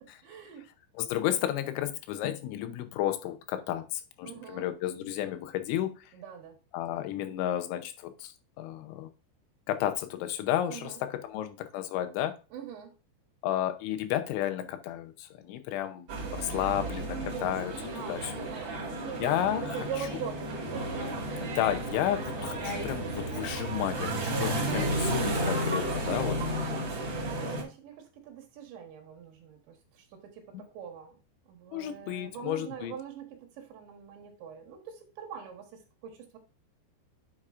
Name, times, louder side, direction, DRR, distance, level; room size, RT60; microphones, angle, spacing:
voice 1, 0.2-0.7 4.2-4.7 6.1-6.6 10.7-11.0 12.5-12.9 17.9-21.1 24.3-24.6 26.0-31.2 31.5-36.4, right 7 dB, 75° right, 3 dB, 3.7 m, -43 dB
voice 2, 1.0-5.9 6.7-8.3 8.6-9.1 9.7-10.9 11.2-12.3 13.4-18.3 19.2-19.6 21.6-26.4 30.5-30.6 31.7-32.9, left 12 dB, 90° left, 8 dB, 3.2 m, -32 dB
sound 1, 16.1-27.6, right 1 dB, 50° right, 1.4 m, -33 dB
9.8 x 6.4 x 2.5 m, 0.32 s
omnidirectional pair, 5.3 m